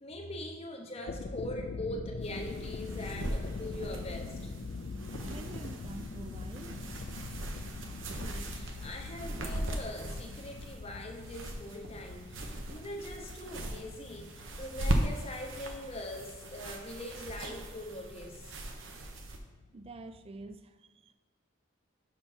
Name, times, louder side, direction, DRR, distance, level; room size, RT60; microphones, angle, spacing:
voice 1, 0.0-4.5 8.2-18.6, left 1 dB, 30° left, 2 dB, 0.7 m, -42 dB
sound 1, 0.9-20.6, left 3 dB, 55° left, 0.4 m, -44 dB
sound 2, 2.2-19.4, right 1 dB, 70° right, 0.8 m, -39 dB
voice 2, 5.3-6.9 19.7-21.1, right 2 dB, 30° right, 9 dB, 0.3 m, -47 dB
5.7 x 4.4 x 5.3 m, 1.4 s
head